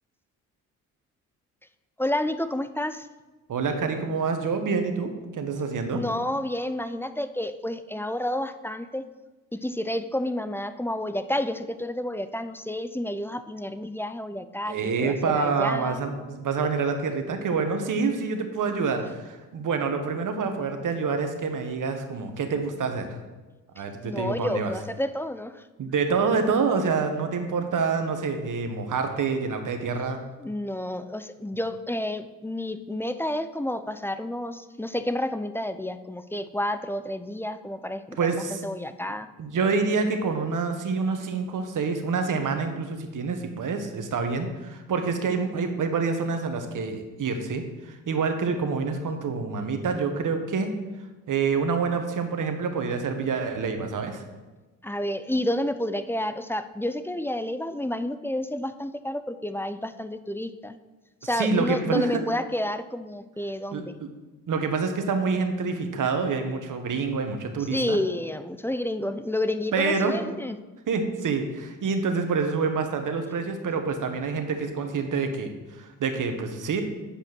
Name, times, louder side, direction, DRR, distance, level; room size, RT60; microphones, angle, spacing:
voice 1, 2.0-3.1 5.9-9.1 9.5-16.0 23.8-25.6 30.4-39.3 54.8-60.7 61.2-64.0 67.7-70.6, left 1 dB, 5° left, 11 dB, 0.5 m, -30 dB
voice 2, 3.5-6.0 14.6-23.1 23.7-24.7 25.8-30.2 38.2-38.6 39.4-50.7 51.3-54.2 61.2-62.2 63.7-63.8 64.5-68.0 69.7-70.1 70.9-76.8, right 5 dB, 50° right, 6 dB, 1.4 m, -27 dB
8.4 x 5.1 x 6.1 m, 1.2 s
hypercardioid pair, 55°, 39 cm